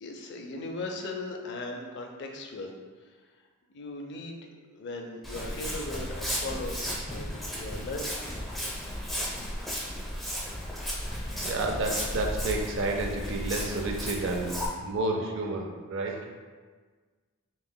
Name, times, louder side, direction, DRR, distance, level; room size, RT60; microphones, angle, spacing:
voice 1, 0.0-2.7 3.0-3.1 3.7-4.5 4.7-6.8 7.1-8.1, left 2 dB, 55° left, 3 dB, 0.5 m, -38 dB
Walk footsteps, 5.2-14.7, equal, ahead, 0.7 m, -34 dB
voice 2, 11.4-16.2, right 2 dB, 60° right, 2 dB, 0.5 m, -30 dB
5.4 x 2.9 x 2.2 m, 1.5 s
head